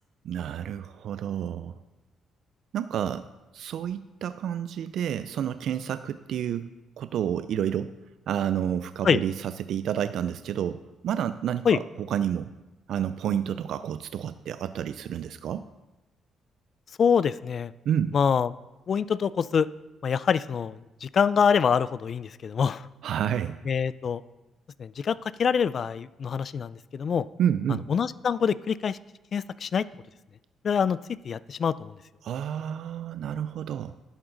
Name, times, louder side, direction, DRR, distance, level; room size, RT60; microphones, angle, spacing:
voice 1, 0.2-1.7 2.7-3.3 3.5-6.7 7.0-7.9 8.3-12.5 12.9-15.7 17.9-18.1 23.0-23.6 27.4-27.9 32.2-33.9, right 9 dB, 75° right, 12 dB, 0.4 m, -29 dB
voice 2, 17.0-17.7 18.1-18.5 18.9-19.7 20.0-22.9 23.7-24.2 24.8-27.3 27.9-29.0 29.3-29.8 30.6-31.0 31.2-31.9, left 7 dB, 50° left, 18 dB, 0.4 m, -25 dB
11.5 x 11.0 x 3.9 m, 1.1 s
cardioid pair, 90°, 0 cm